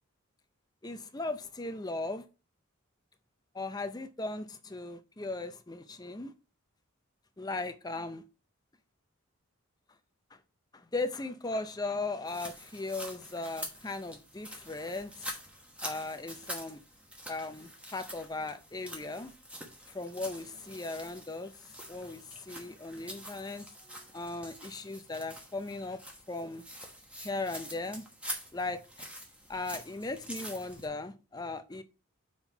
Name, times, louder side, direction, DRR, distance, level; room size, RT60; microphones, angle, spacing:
voice 1, 0.8-2.2 3.5-6.3 7.4-8.2 10.3-10.4 10.7-15.4 15.8-16.8 17.3-19.3 19.9-23.7 24.1-26.0 26.3-26.6 27.2-28.0 28.5-28.8 29.5-31.8, left 2 dB, 20° left, 0.5 m, -37 dB
sound 1, 12.2-30.9, equal, 5° right, 1.1 m, -46 dB
5.8 x 4.4 x 4.4 m
head